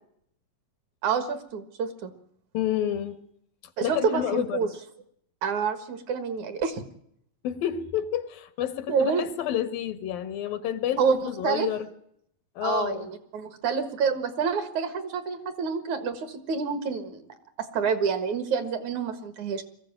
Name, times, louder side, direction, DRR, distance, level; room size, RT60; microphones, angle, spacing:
voice 1, 1.0-2.1 3.8-4.7 5.4-6.8 8.9-9.3 11.0-11.7 12.6-17.3 17.7-19.6, right 6 dB, 60° right, 10 dB, 2.8 m, -28 dB
voice 2, 2.5-3.2 3.8-4.6 7.4-11.9 12.6-13.1, left 11 dB, 80° left, 11 dB, 3.2 m, -29 dB
22.0 x 15.0 x 9.0 m, 0.71 s
omnidirectional pair, 4.1 m